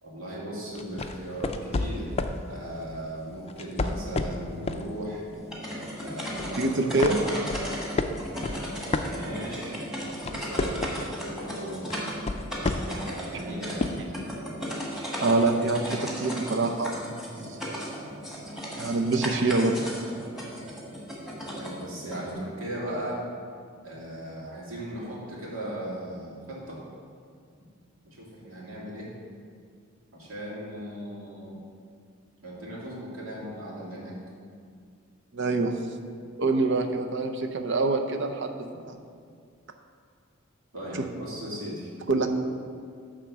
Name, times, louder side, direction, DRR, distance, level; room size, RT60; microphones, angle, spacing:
voice 1, 0.0-2.1 2.5-5.2 6.0-7.4 8.5-8.7 9.0-9.8 10.2-12.0 12.9-13.9 21.6-23.2 23.8-26.8 28.0-29.1 30.1-31.6 32.4-34.1 40.7-41.9, equal, 85° right, -4 dB, 2.4 m, -37 dB
sound 1, 0.8-2.4 3.5-4.9 5.3-5.5 6.0-6.6 7.0-9.6 10.0-11.1 11.9-13.1 13.8-13.9, left 3 dB, 30° left, 0.4 m, -30 dB
sound 2, 5.3-22.3, equal, ahead, 1.5 m, -36 dB
voice 2, 6.6-7.2 15.2-17.6 18.8-19.8 35.3-35.8 36.4-39.0 42.1-42.3, right 3 dB, 65° right, 5 dB, 0.7 m, -25 dB
11.0 x 3.8 x 7.0 m, 2.2 s
head